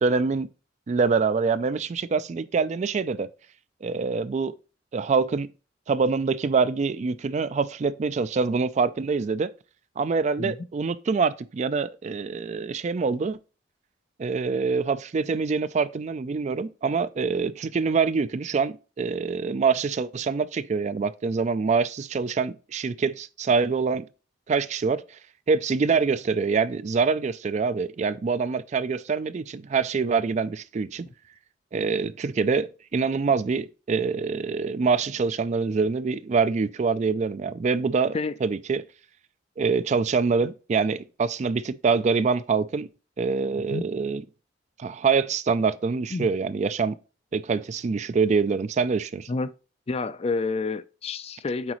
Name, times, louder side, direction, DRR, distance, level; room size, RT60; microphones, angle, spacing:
voice 1, 0.0-0.5 0.9-3.3 3.8-4.5 4.9-5.5 5.9-9.5 10.0-13.4 14.2-24.1 24.5-25.0 25.5-31.1 31.7-38.2 38.4-38.8 39.6-42.9 43.2-44.2 44.8-47.0 47.3-49.3, right 5 dB, 40° right, 0.3 m, -25 dB
voice 2, 49.9-51.7, left 3 dB, 30° left, 0.4 m, -29 dB
7.9 x 4.8 x 3.0 m
head